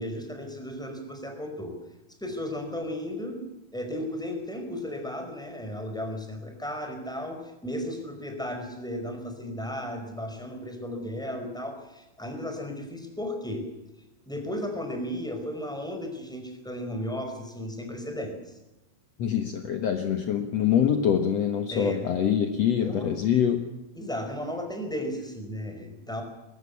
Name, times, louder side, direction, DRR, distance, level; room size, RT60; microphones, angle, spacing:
voice 1, 0.0-1.8 2.2-13.6 14.2-18.6 21.7-22.0 22.8-23.1 23.9-26.2, left 1 dB, ahead, 5 dB, 4.7 m, -35 dB
voice 2, 19.2-23.6, left 9 dB, 60° left, 6 dB, 2.3 m, -25 dB
22.0 x 19.0 x 8.4 m, 0.96 s
omnidirectional pair, 3.6 m